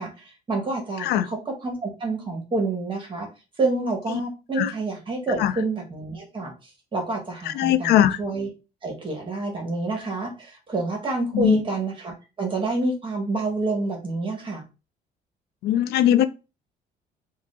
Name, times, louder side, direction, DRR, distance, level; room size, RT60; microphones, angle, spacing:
voice 1, 0.0-3.3 3.6-8.5 8.8-14.6, right 2 dB, 30° right, 1.3 m, -28 dB
voice 2, 7.5-8.2 11.3-11.6 15.6-16.3, left 11 dB, 75° left, 0.4 m, -20 dB
4.6 x 2.4 x 2.5 m
cardioid pair, 110°, 17 cm